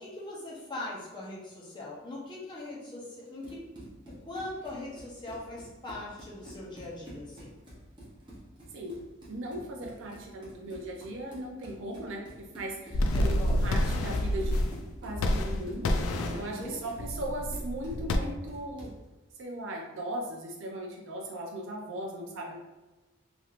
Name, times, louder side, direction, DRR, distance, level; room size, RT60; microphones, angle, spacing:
voice 1, 0.0-3.6 4.2-7.5 13.1-13.6 15.9-16.8 22.1-22.2, left 2 dB, 20° left, -6 dB, 0.7 m, -41 dB
Run, 3.2-19.1, right 1 dB, 20° right, 0.7 m, -48 dB
voice 2, 9.3-14.6 15.0-15.9 16.3-18.9 19.4-22.6, right 1 dB, 70° right, 1 dB, 0.4 m, -38 dB
sound 1, 12.9-14.8 15.1-16.4 17.0-18.2, left 1 dB, 90° left, 0.3 m, -28 dB
3.0 x 2.8 x 2.4 m, 1.1 s
head